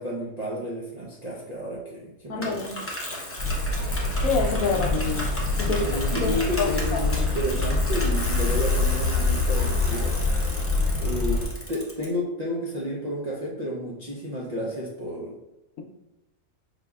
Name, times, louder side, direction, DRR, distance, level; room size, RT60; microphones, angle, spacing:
voice 1, 0.0-2.6 5.6-10.2 11.0-15.4, equal, 55° right, -5 dB, 0.4 m, -31 dB
voice 2, 2.3-2.8 4.2-5.3 5.6-5.9 6.2-7.0, left 4 dB, 75° left, 2 dB, 1.0 m, -27 dB
Bicycle, 2.4-12.0, left 1 dB, 20° left, 0.3 m, -35 dB
sound 1, 3.4-11.4, left 3 dB, 35° right, 1.7 m, -25 dB
5.2 x 3.4 x 2.3 m, 0.94 s
omnidirectional pair, 1.5 m